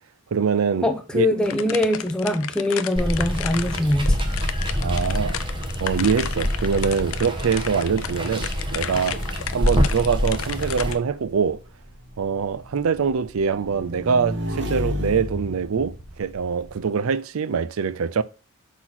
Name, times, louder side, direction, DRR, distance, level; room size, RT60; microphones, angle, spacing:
voice 1, 0.3-0.9 1.1-1.3 4.8-5.4 5.8-9.2 9.5-11.6 12.2-18.2, right 6 dB, 80° right, 0.4 m, -24 dB
voice 2, 0.8-4.2, left 1 dB, 5° left, 0.7 m, -23 dB
sound 1, 1.4-11.0, left 9 dB, 80° left, 0.5 m, -33 dB
Water, 3.0-10.9, equal, 25° right, 1.0 m, -26 dB
Motorcycle / Engine, 10.4-16.8, left 1 dB, 55° right, 1.2 m, -33 dB
6.0 x 4.1 x 6.0 m
head